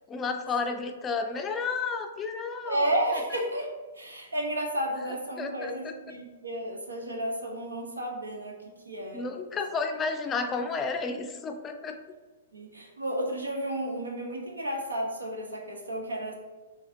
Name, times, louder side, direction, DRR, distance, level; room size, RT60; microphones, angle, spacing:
voice 1, 0.1-2.9 5.4-5.9 9.1-12.0, left 4 dB, 20° left, 5 dB, 0.4 m, -32 dB
voice 2, 2.7-3.7 3.9-8.6 8.8-9.2 12.5-16.3, right 1 dB, 90° right, 1 dB, 0.8 m, -32 dB
4.1 x 3.3 x 2.6 m, 1.3 s
hypercardioid pair, 115°, 0 cm